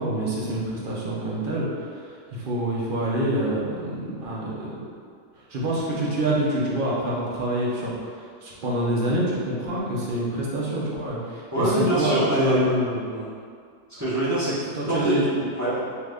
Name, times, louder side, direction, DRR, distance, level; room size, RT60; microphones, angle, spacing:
voice 1, 0.0-4.7 5.3-13.1 14.8-15.4, right 1 dB, 55° right, -5 dB, 0.7 m, -26 dB
voice 2, 11.5-12.6 13.1-13.3 14.0-14.6 14.8-15.1 15.5-15.8, right 1 dB, 15° right, -12 dB, 0.7 m, -24 dB
2.8 x 2.5 x 3.3 m, 2.1 s
omnidirectional pair, 1.3 m